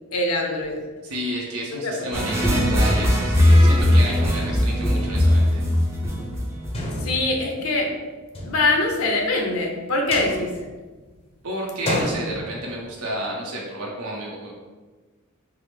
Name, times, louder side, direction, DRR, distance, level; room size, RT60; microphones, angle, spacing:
voice 1, 0.1-0.8 1.7-2.2 7.0-7.9 8.4-10.5, left 2 dB, 75° left, 1 dB, 0.6 m, -23 dB
voice 2, 1.0-5.6 11.4-14.5, right 1 dB, 85° right, -3 dB, 0.7 m, -31 dB
sound 1, 2.1-7.1, left 1 dB, 15° right, 0.6 m, -19 dB
sound 2, 4.8-4.9 5.2-5.7 6.0-6.1 6.7-9.5 9.9-11.3 11.6-13.3, left 1 dB, 25° left, 0.6 m, -33 dB
4.6 x 2.0 x 3.2 m, 1.3 s
head